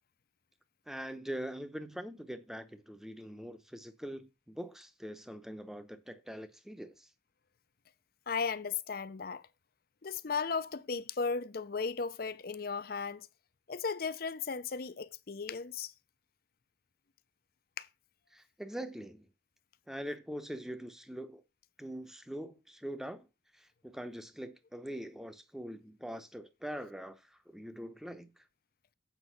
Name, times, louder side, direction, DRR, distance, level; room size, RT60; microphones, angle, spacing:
voice 1, 0.9-7.1 18.3-19.3 19.9-21.4 21.8-23.3 23.6-28.3, equal, ahead, 0.8 m, -43 dB
voice 2, 8.3-9.5 10.0-13.3 13.7-15.9 17.8-17.9, left 5 dB, 55° left, 0.6 m, -36 dB
8.2 x 5.3 x 5.5 m
head